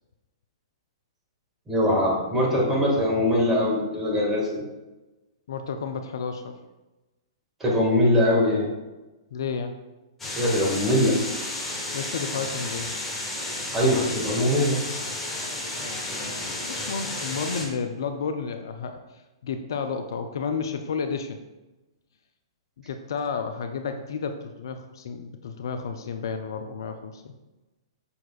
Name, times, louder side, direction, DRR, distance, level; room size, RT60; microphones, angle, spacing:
voice 1, 1.7-4.7 7.6-8.7 10.3-11.1 13.7-14.8, left 1 dB, 15° right, -3 dB, 1.8 m, -22 dB
voice 2, 5.5-6.6 9.3-9.8 11.9-13.0 16.4-19.0 19.4-21.5 22.9-27.3, left 5 dB, 55° left, 7 dB, 0.4 m, -31 dB
sound 1, 10.2-17.7, left 2 dB, 10° left, 1.5 m, -32 dB
6.9 x 5.7 x 2.4 m, 1.1 s
figure-of-eight pair, 110°, 3 cm